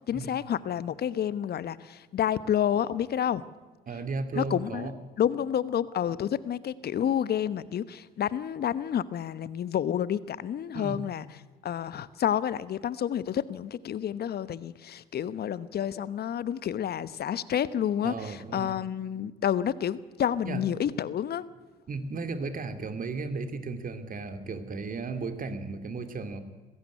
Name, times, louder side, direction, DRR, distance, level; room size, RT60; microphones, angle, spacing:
voice 1, 0.1-3.4 4.3-4.9 5.2-11.3 11.6-21.5, left 9 dB, 50° left, 17 dB, 1.1 m, -29 dB
voice 2, 3.9-4.9 10.7-11.0 18.0-18.7 20.4-20.6 21.9-26.4, right 4 dB, 45° right, 9 dB, 2.8 m, -35 dB
21.0 x 15.5 x 9.8 m, 1.3 s
hypercardioid pair, 60°, 20 cm